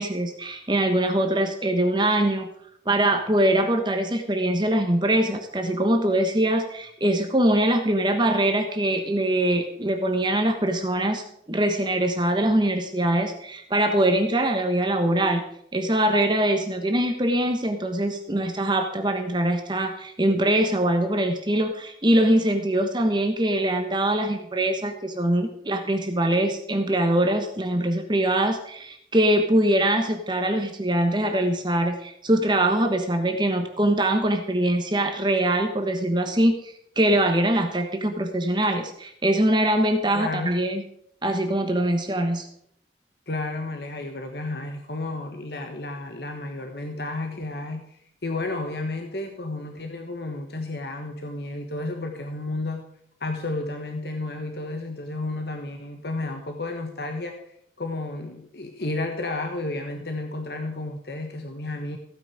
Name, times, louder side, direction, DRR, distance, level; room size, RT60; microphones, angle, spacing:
voice 1, 0.0-2.5 2.8-15.4 15.7-40.8 41.2-42.5, right 1 dB, 25° right, 5 dB, 1.2 m, -23 dB
voice 2, 40.1-40.5 43.3-52.8 53.2-57.3 57.8-62.0, left 2 dB, 65° left, 5 dB, 1.3 m, -32 dB
15.5 x 8.8 x 4.9 m, 0.71 s
head